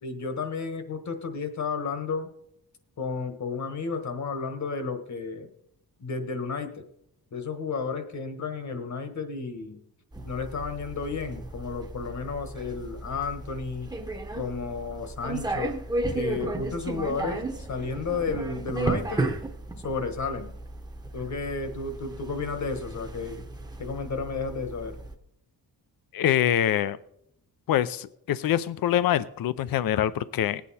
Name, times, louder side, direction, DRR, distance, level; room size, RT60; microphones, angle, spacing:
voice 1, 0.0-2.3 3.0-5.5 6.0-6.8 7.3-9.8 10.2-13.9 14.3-15.8 16.1-19.3 19.8-20.5 21.1-23.4 23.8-24.9, left 4 dB, 50° left, 8 dB, 1.4 m, -32 dB
sound 1, 10.1-25.1, right 2 dB, 10° right, 0.9 m, -34 dB
voice 2, 26.1-27.0 27.7-30.6, left 11 dB, 70° left, 16 dB, 0.6 m, -25 dB
19.5 x 8.5 x 4.2 m, 0.75 s
wide cardioid pair, 170°, 36 cm